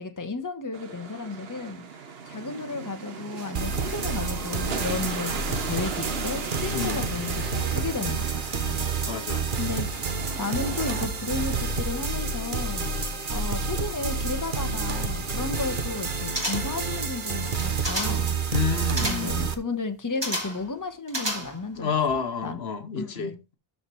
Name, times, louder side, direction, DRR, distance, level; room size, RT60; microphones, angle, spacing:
voice 1, 0.0-1.8 2.2-8.8 9.6-10.1 10.4-12.9 13.3-18.4 19.0-22.6 22.9-23.4, left 4 dB, 20° left, 1.1 m, -33 dB
sound 1, 0.7-11.1, right 5 dB, 70° right, 1.3 m, -37 dB
sound 2, 3.5-19.5, right 4 dB, 55° right, 1.3 m, -29 dB
voice 2, 6.7-7.2 9.1-9.5 18.5-19.4 21.8-23.5, left 6 dB, 80° left, 1.3 m, -29 dB
sound 3, 16.3-16.9 17.5-18.3 19.0-19.4 20.2-20.7 21.1-21.8 22.1-22.2, equal, 25° right, 2.7 m, -31 dB
12.5 x 4.5 x 4.7 m
omnidirectional pair, 1.0 m